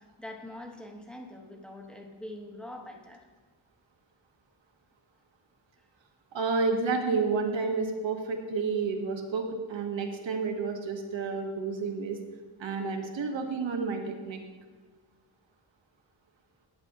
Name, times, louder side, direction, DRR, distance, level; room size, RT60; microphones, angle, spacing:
voice 1, 0.0-3.3 5.8-5.9, left 1 dB, ahead, 0 dB, 0.9 m, -44 dB
voice 2, 6.3-12.2 12.6-14.4, right 4 dB, 70° right, 3 dB, 1.1 m, -30 dB
11.5 x 8.9 x 2.7 m, 1.3 s
wide cardioid pair, 170°, 47 cm